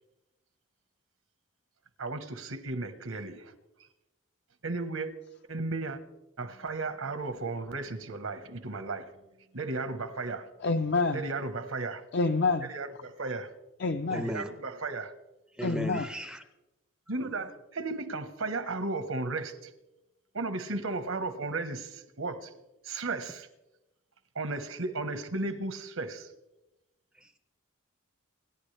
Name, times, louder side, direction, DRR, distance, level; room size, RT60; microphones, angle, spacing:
voice 1, 2.0-3.5 4.6-5.1 5.5-6.0 6.4-9.1 9.5-10.5 11.1-12.0 12.7-13.5 14.1-15.1 17.1-19.7 20.3-22.5 22.8-23.5 24.3-26.3, right 3 dB, 80° right, 9 dB, 1.3 m, -35 dB
voice 2, 10.6-11.3 12.1-12.7 13.8-14.4 15.6-16.1, left 3 dB, 55° left, 7 dB, 0.6 m, -28 dB
voice 3, 14.1-14.5 15.6-16.4 27.2-27.4, equal, 5° right, 9 dB, 0.5 m, -35 dB
28.0 x 11.0 x 3.4 m, 1.0 s
head